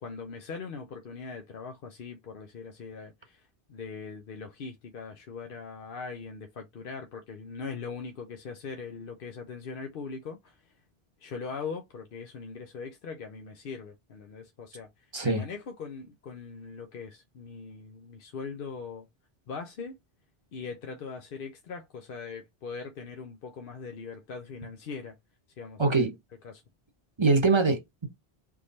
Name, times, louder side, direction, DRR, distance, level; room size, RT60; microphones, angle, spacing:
voice 1, 0.0-3.4 3.7-10.6 11.2-14.9 15.2-19.1 19.5-20.0 20.5-25.2 25.6-26.1 26.4-26.6, left 5 dB, 60° left, 0.8 m, -40 dB
voice 2, 15.1-15.5 25.8-26.1 27.2-28.1, right 3 dB, 30° right, 0.9 m, -23 dB
3.6 x 3.1 x 4.0 m
omnidirectional pair, 1.1 m